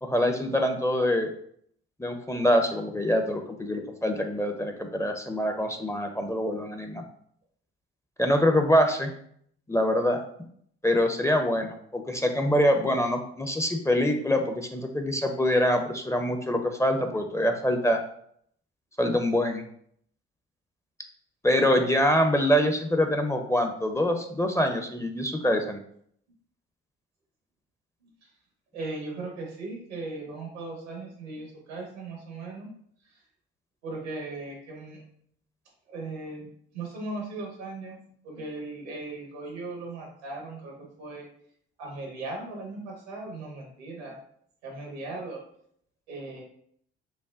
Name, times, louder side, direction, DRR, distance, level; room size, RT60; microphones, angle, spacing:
voice 1, 0.0-1.3 2.0-7.0 8.2-9.1 9.7-10.2 10.8-18.0 19.0-19.6 21.4-25.8, equal, 10° left, 5 dB, 0.5 m, -25 dB
voice 2, 28.7-32.7 33.8-35.0 35.9-36.5 36.7-38.0 38.2-40.7 41.0-41.3 41.8-44.2 44.6-45.4 46.1-46.4, right 2 dB, 85° right, 0 dB, 1.2 m, -38 dB
5.6 x 2.1 x 2.4 m, 0.65 s
hypercardioid pair, 50°, 33 cm